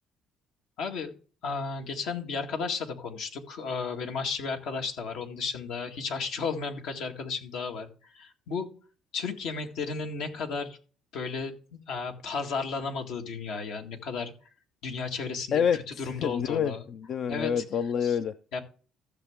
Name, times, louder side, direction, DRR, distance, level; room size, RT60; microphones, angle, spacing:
voice 1, 0.8-1.1 1.4-7.9 8.2-8.7 9.1-10.8 11.1-11.6 11.9-14.3 14.8-15.6 16.0-16.8 17.3-17.6 18.0-18.1 18.5-18.6, left 4 dB, 75° left, 3 dB, 1.9 m, -33 dB
voice 2, 15.5-18.3, left 7 dB, 55° left, 12 dB, 0.5 m, -28 dB
14.5 x 6.8 x 3.7 m, 0.38 s
cardioid pair, 105°, 0 cm